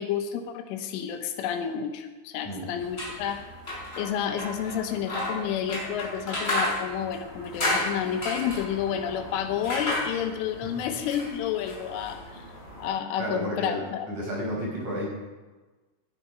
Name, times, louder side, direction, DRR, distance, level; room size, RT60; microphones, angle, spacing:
voice 1, 0.0-3.4 4.0-12.5 12.8-14.1, left 9 dB, 80° left, 6 dB, 3.5 m, -30 dB
sound 1, 2.8-12.9, left 1 dB, 10° left, 5.9 m, -33 dB
voice 2, 13.2-15.1, equal, 35° right, -3 dB, 6.3 m, -32 dB
18.0 x 11.0 x 5.5 m, 1.3 s
omnidirectional pair, 5.7 m